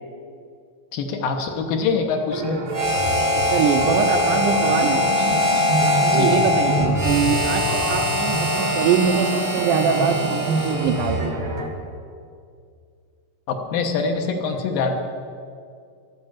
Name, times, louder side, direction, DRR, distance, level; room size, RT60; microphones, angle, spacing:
voice 1, 0.9-2.6 6.1-6.3 13.5-15.0, left 4 dB, 70° left, 4 dB, 2.7 m, -24 dB
sound 1, 2.3-11.7, right 2 dB, 60° right, 0.8 m, -27 dB
Harmonica, 2.7-11.3, left 1 dB, 30° right, 0.5 m, -23 dB
voice 2, 3.5-5.0 5.8-11.4, right 6 dB, 75° right, 3 dB, 2.0 m, -23 dB
13.0 x 11.5 x 7.4 m, 2.3 s
omnidirectional pair, 4.4 m